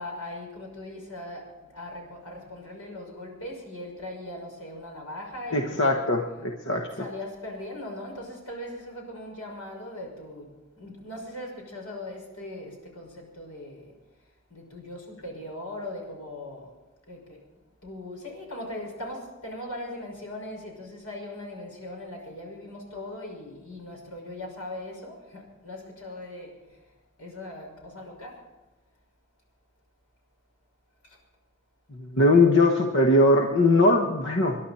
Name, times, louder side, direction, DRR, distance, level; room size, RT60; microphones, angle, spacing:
voice 1, 0.0-6.0 7.0-13.9 14.5-16.7 17.1-17.4 17.8-26.8 27.2-28.4 31.0-31.2, left 1 dB, 85° left, 0 dB, 5.9 m, -39 dB
voice 2, 5.5-7.0 31.9-34.6, left 2 dB, 55° left, 2 dB, 1.2 m, -21 dB
27.5 x 11.0 x 4.3 m, 1.1 s
head